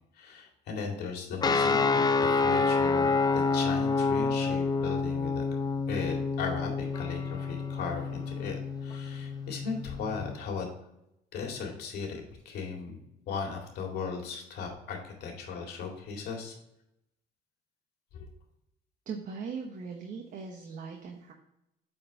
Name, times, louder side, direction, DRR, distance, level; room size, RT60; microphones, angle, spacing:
voice 1, 0.1-5.4 5.9-10.7 11.3-13.0 13.3-16.6 18.1-18.3, left 5 dB, 70° left, 1 dB, 2.1 m, -37 dB
sound 1, 1.4-10.4, left 4 dB, 25° left, 0.5 m, -28 dB
voice 2, 19.1-21.3, right 5 dB, 50° right, 1 dB, 1.1 m, -39 dB
8.2 x 4.4 x 3.4 m, 0.83 s
cardioid pair, 110°, 17 cm